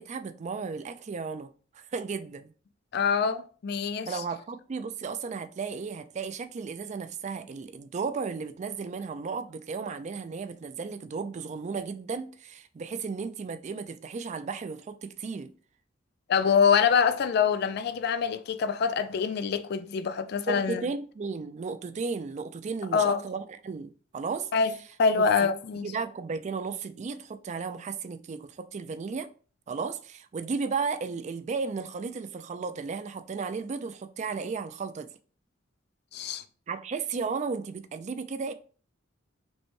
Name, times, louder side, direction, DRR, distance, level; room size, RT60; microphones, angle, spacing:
voice 1, 0.0-1.5 1.7-2.5 4.0-15.5 20.5-24.5 25.1-25.5 25.8-29.3 29.7-35.1 36.2-36.4 36.7-38.5, right 5 dB, 35° right, 0.3 m, -34 dB
voice 2, 2.9-4.2 16.3-20.8 22.9-23.2 24.5-24.7 25.0-25.9 36.1-36.4, left 6 dB, 55° left, 0.4 m, -25 dB
5.1 x 2.2 x 3.1 m
head